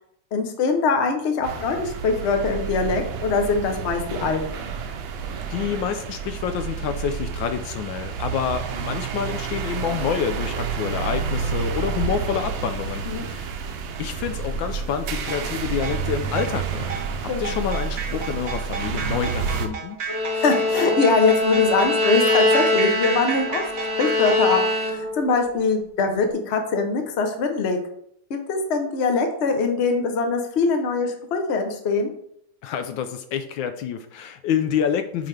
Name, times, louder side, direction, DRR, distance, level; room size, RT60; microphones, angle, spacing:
voice 1, 0.3-4.7 13.0-13.2 17.3-17.6 20.3-23.7 24.0-27.8 28.3-32.1, left 4 dB, 50° left, 5 dB, 0.8 m, -23 dB
sound 1, 1.4-19.7, right 6 dB, 80° right, 1.4 m, -30 dB
voice 2, 5.5-13.5 14.0-20.0 32.6-35.3, left 8 dB, 75° left, 9 dB, 1.2 m, -28 dB
sound 2, 15.3-24.5, right 5 dB, 55° right, 1.1 m, -33 dB
Bowed string instrument, 20.1-25.2, left 2 dB, 15° left, 1.6 m, -23 dB
8.1 x 4.0 x 3.3 m, 0.70 s
omnidirectional pair, 2.2 m